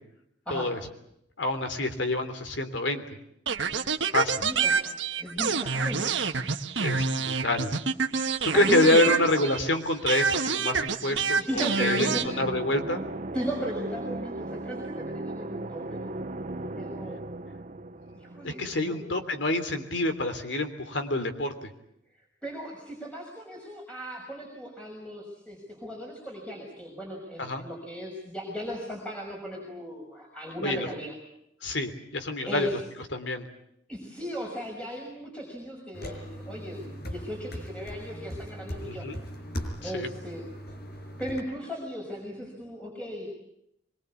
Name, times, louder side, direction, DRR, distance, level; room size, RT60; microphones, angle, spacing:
voice 1, 1.4-3.0 4.1-4.5 6.8-7.7 8.5-13.0 18.4-21.7 27.4-27.6 30.6-30.9 31.6-32.7 33.1-33.5 38.8-39.1 39.8-40.1, left 2 dB, 75° left, 7 dB, 3.3 m, -27 dB
sound 1, 3.5-9.7 10.1-12.3, right 5 dB, 80° right, 1.5 m, -27 dB
voice 2, 4.4-6.0 8.5-9.2 11.0-12.3 13.3-16.0 16.7-17.2 18.1-19.0 22.4-31.1 32.5-32.7 33.9-39.1 39.8-40.5 41.2-43.3, equal, 5° left, -1 dB, 6.0 m, -37 dB
sound 2, 11.7-19.4, right 2 dB, 45° right, 0.9 m, -37 dB
sound 3, 35.9-41.4, equal, 60° left, 5.7 m, -39 dB
25.0 x 23.0 x 8.4 m, 0.78 s
head